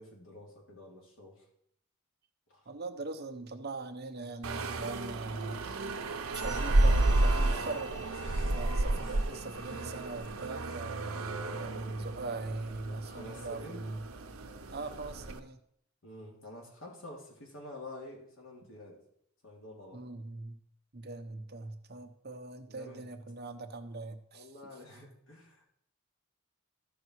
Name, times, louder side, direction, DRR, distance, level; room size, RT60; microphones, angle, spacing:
voice 1, 0.0-1.4 2.5-2.6 8.2-8.5 8.9-9.4 12.9-13.9 16.0-19.0 19.4-20.0 22.7-23.0 24.3-25.6, left 1 dB, 65° left, -2 dB, 3.1 m, -48 dB
voice 2, 2.7-5.7 6.3-8.2 8.5-14.0 14.7-15.6 19.9-20.6 20.9-24.5, right 3 dB, 50° right, 6 dB, 1.0 m, -41 dB
sound 1, 4.4-15.4, right 2 dB, 90° right, 0.9 m, -31 dB
sound 2, 6.3-11.2, left 1 dB, 10° left, 3.7 m, -51 dB
14.0 x 5.5 x 4.7 m, 0.71 s
head